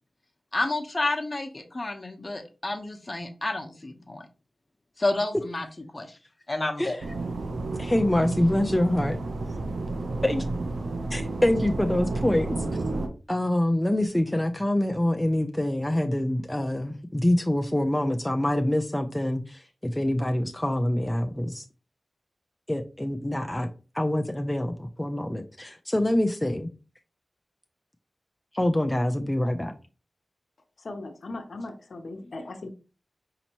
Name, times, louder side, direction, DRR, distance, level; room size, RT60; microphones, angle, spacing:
voice 1, 0.5-4.2 5.0-5.7 5.9-6.2 6.5-7.0, left 2 dB, 35° left, 0.9 m, -30 dB
sound 1, 7.0-13.1, right 2 dB, 85° right, 0.6 m, -31 dB
voice 2, 7.8-9.2 10.2-10.4 11.1-12.6 13.3-21.6 22.7-23.7 23.9-26.7 28.5-29.7, left 1 dB, 15° left, 0.4 m, -25 dB
voice 3, 30.8-32.7, left 2 dB, 70° left, 0.7 m, -38 dB
5.2 x 2.9 x 2.9 m
cardioid pair, 50°, 0 cm